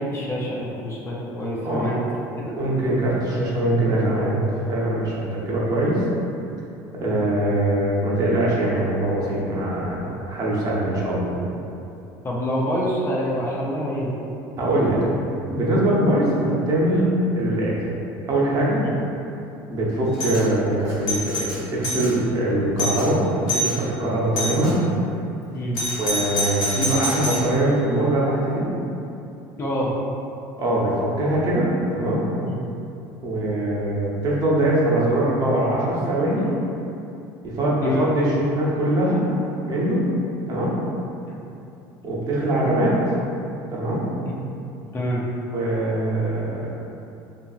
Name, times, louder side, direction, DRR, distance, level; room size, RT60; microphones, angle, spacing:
voice 1, 0.0-2.0 2.4-2.6 12.2-14.1 18.8-18.9 25.5-25.8 29.6-29.9 32.4-32.6 37.8-38.1 41.3-41.4 44.4-44.5 44.9-45.2, equal, 30° left, -4 dB, 0.5 m, -26 dB
voice 2, 1.6-2.0 2.6-4.3 4.7-6.0 6.9-11.4 14.6-15.0 15.5-17.7 18.3-18.8 19.7-24.8 26.0-28.7 30.6-32.3 33.2-36.5 37.4-39.2 39.6-40.1 40.5-40.8 42.0-43.0 43.7-44.1 45.5-46.7, right 1 dB, 45° right, -6 dB, 0.7 m, -22 dB
Doorbell, 20.1-20.4 20.9-22.1 22.5-22.6 22.8-23.1 23.5-23.8 24.4-24.7 25.7-27.5, equal, 80° left, 0.7 m, -26 dB
2.8 x 2.6 x 2.3 m, 2.8 s
supercardioid pair, 110°, 9 cm